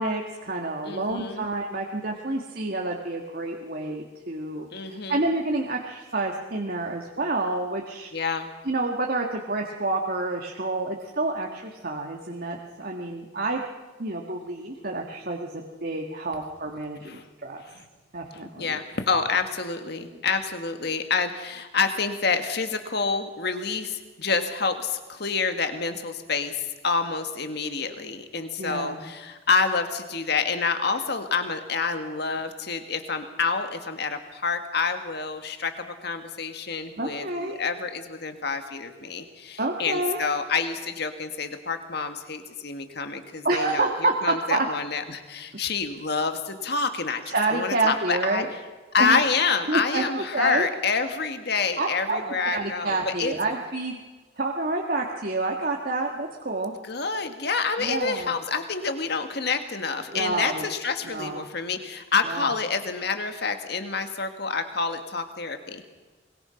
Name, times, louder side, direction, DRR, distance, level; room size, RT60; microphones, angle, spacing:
voice 1, 0.0-8.1 8.7-13.6 14.0-17.6 18.1-18.8 28.6-29.0 37.0-37.6 39.6-40.2 43.4-44.7 47.3-48.5 49.0-49.2 49.7-50.7 51.8-52.2 52.5-54.0 54.4-56.7 57.8-58.3 60.1-60.6 61.0-61.4 62.3-62.5, right 2 dB, 50° right, 0 dB, 1.8 m, -28 dB
voice 2, 0.8-1.5 4.7-5.2 8.1-8.5 17.0-17.3 17.6-17.9 18.3-48.4 48.9-53.3 56.8-65.9, left 4 dB, 55° left, 7 dB, 1.9 m, -28 dB
23.0 x 22.0 x 5.8 m, 1.3 s
head